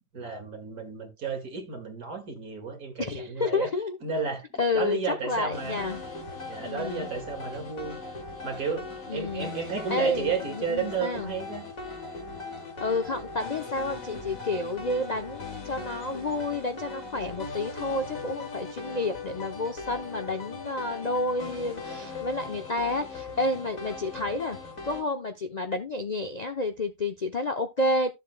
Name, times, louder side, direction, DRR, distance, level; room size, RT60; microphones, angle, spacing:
voice 1, 0.1-3.7 4.0-4.4 4.7-5.8 6.5-8.0 8.4-11.7, right 5 dB, 65° right, 2.5 m, -32 dB
voice 2, 3.0-4.0 4.6-6.0 6.6-7.1 9.1-9.5 9.9-11.3 12.8-24.6 24.8-28.1, left 2 dB, 40° left, 0.6 m, -30 dB
sound 1, 5.5-25.0, left 3 dB, 55° left, 2.7 m, -39 dB
13.0 x 7.3 x 2.2 m
omnidirectional pair, 1.7 m